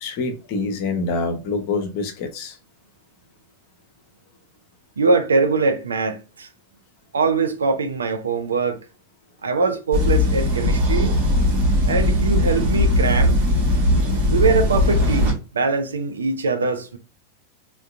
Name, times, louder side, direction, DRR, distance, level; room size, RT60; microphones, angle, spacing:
voice 1, 0.0-2.6, left 3 dB, 45° left, 0.7 m, -26 dB
voice 2, 5.0-6.5 7.1-8.8 9.4-11.1 11.9-13.4 14.3-17.0, right 4 dB, 70° right, 0.5 m, -22 dB
sound 1, 9.9-15.3, left 1 dB, 50° right, 1.2 m, -19 dB
3.7 x 2.3 x 2.4 m
figure-of-eight pair, 90°, 0 cm